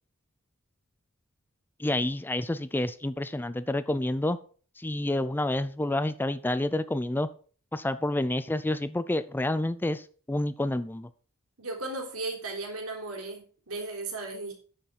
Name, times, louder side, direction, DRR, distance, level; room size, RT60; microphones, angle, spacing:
voice 1, 1.8-4.4 4.8-7.3 7.7-11.1, left 1 dB, 10° left, 14 dB, 0.4 m, -29 dB
voice 2, 11.6-14.5, right 2 dB, 80° right, 1 dB, 3.6 m, -36 dB
9.2 x 6.6 x 5.9 m, 0.42 s
head